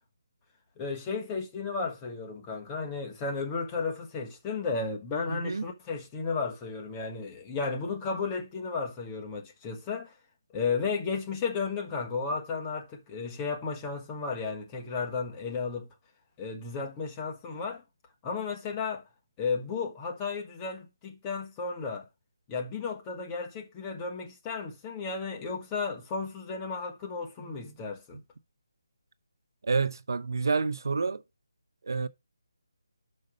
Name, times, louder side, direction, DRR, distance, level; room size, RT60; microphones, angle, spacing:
voice 1, 0.8-10.1 10.5-15.9 16.4-17.8 18.2-19.0 19.4-22.1 22.5-28.2, left 4 dB, 15° left, 1.3 m, -33 dB
voice 2, 5.3-5.6 29.6-31.2 31.8-32.1, right 4 dB, 65° right, 0.6 m, -28 dB
6.4 x 5.3 x 5.2 m
figure-of-eight pair, 165°, 2 cm